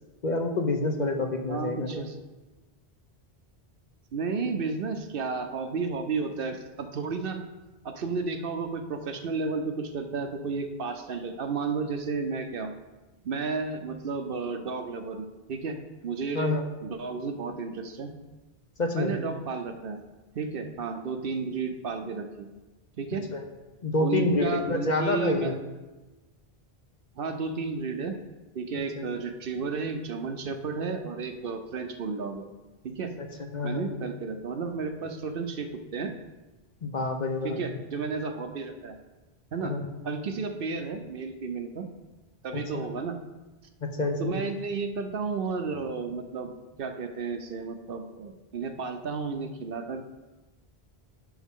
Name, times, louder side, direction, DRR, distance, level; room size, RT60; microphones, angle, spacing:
voice 1, 0.2-2.1 16.3-16.6 18.8-19.1 23.3-23.4 23.8-25.6 28.7-29.1 33.2-34.1 36.8-37.6 39.6-39.9 42.7-42.9 43.8-44.4, left 2 dB, 45° left, 4 dB, 0.9 m, -28 dB
voice 2, 1.5-2.2 4.1-7.4 7.8-12.7 13.2-15.8 16.0-18.1 19.0-20.0 20.3-22.5 23.0-23.3 24.0-25.5 27.2-28.1 28.5-32.5 32.8-33.1 33.6-36.1 37.4-39.0 39.5-39.8 40.0-41.9 42.4-43.2 44.2-46.5 46.8-50.0, right 4 dB, 65° right, 6 dB, 0.8 m, -32 dB
10.5 x 5.7 x 3.6 m, 1.2 s
omnidirectional pair, 1.1 m